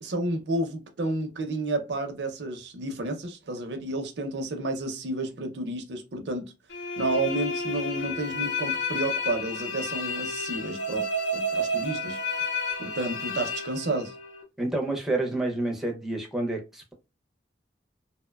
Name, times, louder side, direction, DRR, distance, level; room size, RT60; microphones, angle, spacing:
voice 1, 0.0-6.5 7.0-12.5 12.8-14.1, right 2 dB, 80° right, 0.5 m, -31 dB
sound 1, 6.7-14.4, left 2 dB, 75° left, 0.6 m, -31 dB
voice 2, 14.6-16.9, right 2 dB, ahead, 0.5 m, -29 dB
2.7 x 2.1 x 2.2 m
head